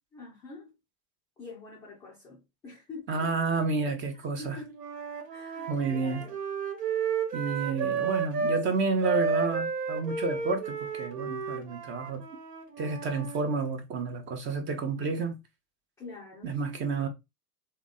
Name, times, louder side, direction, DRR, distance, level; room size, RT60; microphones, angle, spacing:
voice 1, 0.1-0.7 1.4-3.4 4.4-4.8 5.3-6.4 7.4-8.6 16.0-17.1, left 3 dB, 5° left, 0.3 m, -47 dB
voice 2, 3.1-4.6 5.7-6.2 7.3-12.2 12.8-15.4 16.4-17.1, right 4 dB, 25° right, 0.8 m, -30 dB
Wind instrument woodwind instrument, 4.7-8.6 9.0-13.4, right 5 dB, 75° right, 1.1 m, -32 dB
3.5 x 2.2 x 3.9 m
figure-of-eight pair, 95°, 48 cm